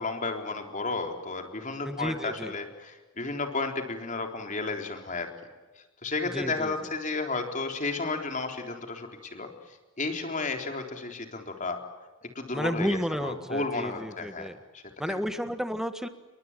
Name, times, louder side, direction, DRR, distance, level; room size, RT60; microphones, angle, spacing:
voice 1, 0.0-5.3 6.0-9.5 10.0-11.8 12.4-14.5 14.7-15.2, left 3 dB, 35° left, 4 dB, 3.8 m, -33 dB
voice 2, 1.8-2.5 6.2-6.7 12.5-14.6 15.0-16.1, equal, ahead, 9 dB, 1.7 m, -32 dB
29.5 x 23.0 x 7.5 m, 1.2 s
head